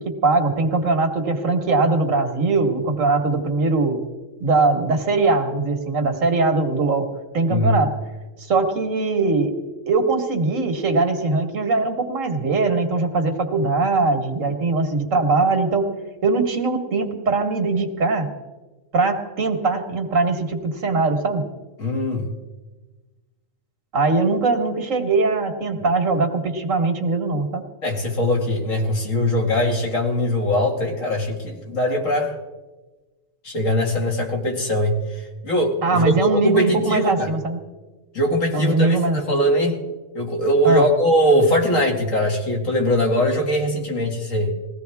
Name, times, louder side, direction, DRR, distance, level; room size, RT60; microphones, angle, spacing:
voice 1, 0.0-4.0 4.4-7.1 7.3-7.9 8.4-9.5 9.9-15.9 16.2-18.3 18.9-21.5 23.9-27.6 35.8-37.6 38.5-39.4 40.6-40.9, right 3 dB, 75° right, 5 dB, 1.9 m, -21 dB
voice 2, 21.8-22.3 27.8-32.4 33.4-37.3 38.1-39.8 40.1-44.6, equal, 75° left, 0 dB, 2.6 m, -21 dB
20.5 x 16.0 x 3.5 m, 1.2 s
omnidirectional pair, 1.4 m